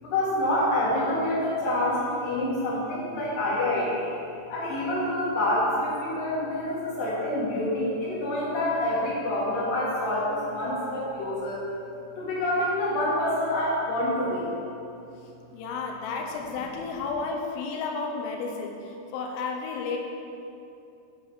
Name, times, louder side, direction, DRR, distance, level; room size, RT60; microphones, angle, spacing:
voice 1, 0.0-4.2 4.5-11.6 12.2-14.5, left 1 dB, 65° left, -7 dB, 3.6 m, -27 dB
voice 2, 15.5-20.0, left 4 dB, 80° left, 1 dB, 2.6 m, -32 dB
10.5 x 4.1 x 5.2 m, 2.7 s
omnidirectional pair, 4.5 m